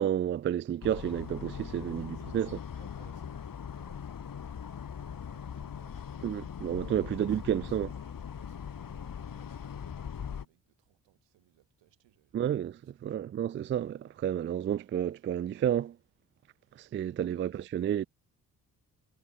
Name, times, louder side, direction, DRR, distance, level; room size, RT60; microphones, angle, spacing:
voice 1, 0.0-2.1 2.3-2.5 6.2-7.9 12.3-15.9 16.8-18.0, right 10 dB, 30° right, 0.3 m, -31 dB
sound 1, 0.8-10.4, left 7 dB, 50° left, 2.5 m, -41 dB
voice 2, 1.9-6.4 6.9-13.3 17.2-17.7, right 16 dB, 80° right, 4.5 m, -64 dB
hypercardioid pair, 45°, 43 cm